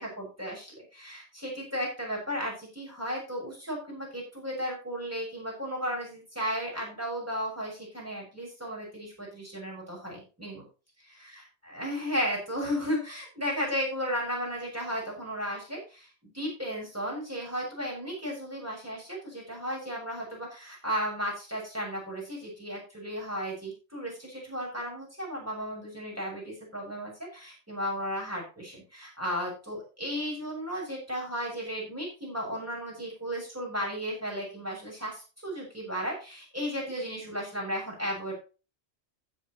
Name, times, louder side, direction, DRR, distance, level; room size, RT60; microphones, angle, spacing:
voice 1, 0.0-10.7 11.0-38.3, equal, 15° right, -3 dB, 6.8 m, -34 dB
15.5 x 7.7 x 3.1 m, 0.33 s
omnidirectional pair, 1.2 m